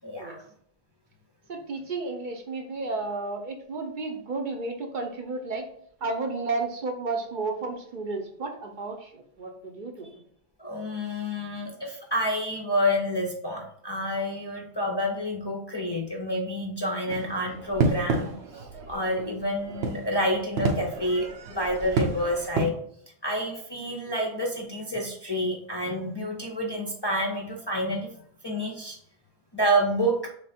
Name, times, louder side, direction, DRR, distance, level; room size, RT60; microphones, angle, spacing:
voice 1, 0.0-0.4 10.6-22.7 23.2-28.1 28.4-29.0 29.5-30.3, equal, 35° left, -1 dB, 0.4 m, -28 dB
voice 2, 1.5-5.7 6.0-10.2 17.1-17.2, right 3 dB, 55° right, 3 dB, 0.7 m, -32 dB
sound 1, 17.1-22.7, right 3 dB, 85° right, 0.9 m, -30 dB
3.4 x 3.2 x 4.1 m, 0.65 s
omnidirectional pair, 1.1 m